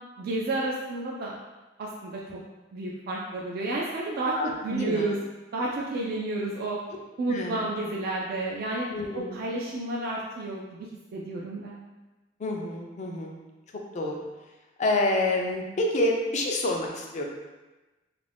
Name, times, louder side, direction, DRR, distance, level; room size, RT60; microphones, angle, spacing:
voice 1, 0.2-1.4 1.8-2.4 2.7-5.2 5.5-6.8 7.2-8.9 9.1-11.8, right 2 dB, 50° right, -3 dB, 0.3 m, -31 dB
voice 2, 4.3-5.1 7.3-7.6 8.9-9.4 12.4-13.4 13.9-14.2 14.8-17.2, left 2 dB, 40° left, 1 dB, 0.4 m, -28 dB
2.5 x 2.2 x 3.3 m, 1.2 s
head